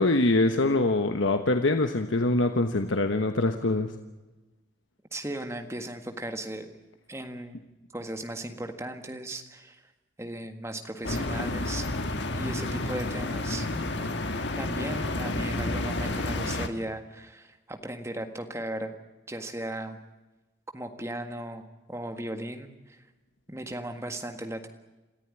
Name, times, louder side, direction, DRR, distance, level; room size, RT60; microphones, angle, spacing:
voice 1, 0.0-3.9, left 2 dB, 90° left, 6 dB, 1.2 m, -24 dB
voice 2, 5.1-6.7 7.1-7.6 7.9-9.8 10.2-11.9 12.3-13.7 14.0-19.0 19.3-20.0 20.7-23.0 23.5-24.7, right 1 dB, 15° right, 6 dB, 1.6 m, -37 dB
sound 1, 11.0-16.7, left 2 dB, 70° left, 1.6 m, -30 dB
27.5 x 14.5 x 9.9 m, 1.1 s
head